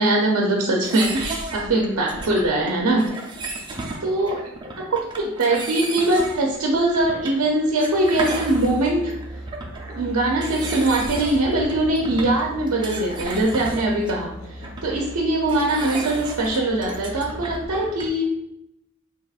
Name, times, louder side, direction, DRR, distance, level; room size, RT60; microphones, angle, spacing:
voice 1, 0.0-3.1 4.0-4.4 4.8-9.1 9.9-18.3, right 1 dB, 85° right, -1 dB, 0.6 m, -22 dB
sound 1, 0.8-18.2, right 2 dB, 20° right, 0.4 m, -34 dB
Musical instrument, 8.0-17.8, right 1 dB, 70° left, 0.7 m, -38 dB
4.7 x 2.9 x 2.4 m, 0.83 s
head